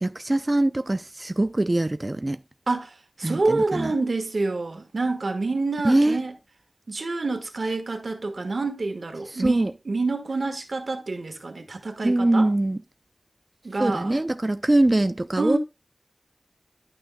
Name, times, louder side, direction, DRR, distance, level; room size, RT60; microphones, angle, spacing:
voice 1, 0.0-2.4 3.2-3.9 5.8-6.2 9.4-9.7 12.0-12.8 13.8-15.6, right 1 dB, 35° right, 0.4 m, -22 dB
voice 2, 2.7-6.3 6.9-12.5 13.6-14.2 15.4-15.6, right 3 dB, 90° right, 1.4 m, -27 dB
11.5 x 6.2 x 2.2 m
wide cardioid pair, 65°, 0 cm